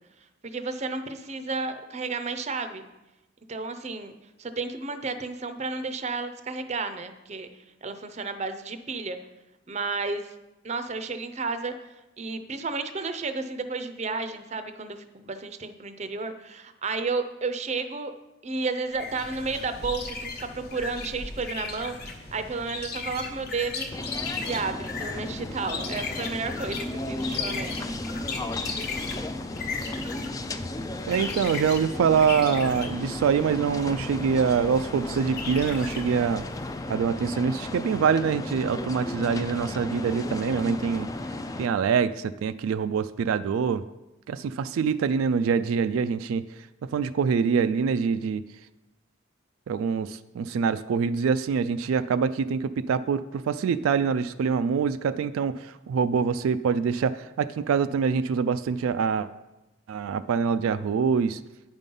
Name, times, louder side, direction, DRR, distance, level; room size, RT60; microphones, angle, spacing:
voice 1, 0.4-2.8 3.5-4.1 4.4-7.5 7.8-9.2 9.7-10.3 10.6-11.7 12.2-18.1 18.4-23.9 24.4-27.9, right 4 dB, 35° right, 10 dB, 0.5 m, -32 dB
sound 1, 18.9-36.9, left 4 dB, 50° left, 1.0 m, -37 dB
sound 2, 23.9-41.7, left 2 dB, 15° left, 0.3 m, -35 dB
voice 2, 31.1-36.5 36.9-41.1 41.6-43.8 44.3-46.4 46.8-48.4 49.7-59.3 59.9-61.4, right 6 dB, 85° right, 11 dB, 0.3 m, -25 dB
9.0 x 5.4 x 5.4 m, 1.0 s
head